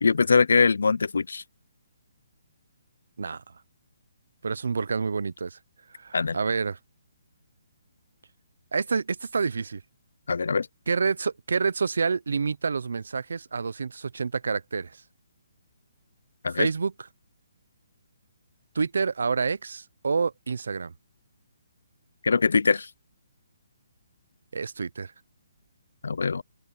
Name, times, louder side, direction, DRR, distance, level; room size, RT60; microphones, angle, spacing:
voice 1, 0.0-1.4 6.1-6.4 10.3-10.7 16.4-16.7 22.2-22.9 26.0-26.4, left 4 dB, 90° left, 0.4 m, -22 dB
voice 2, 4.4-5.6 6.0-6.8 8.7-9.8 10.9-15.0 16.6-16.9 18.7-20.9 24.5-25.1, right 5 dB, 80° right, 0.7 m, -28 dB
hypercardioid pair, 175°, 0 cm